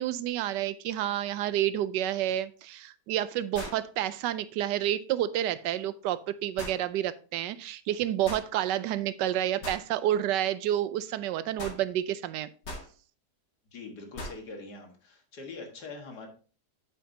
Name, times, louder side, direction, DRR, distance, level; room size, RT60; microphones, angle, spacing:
voice 1, 0.0-12.5, right 12 dB, 90° right, 1.2 m, -29 dB
sound 1, 2.3-2.4 3.5-3.9 6.6-6.8 8.2-8.5 9.6-9.9 11.6-11.8 12.6-12.9 14.1-14.4, left 1 dB, 85° left, 3.0 m, -39 dB
voice 2, 13.7-16.3, left 3 dB, 70° left, 2.2 m, -43 dB
8.4 x 7.9 x 2.8 m
omnidirectional pair, 1.8 m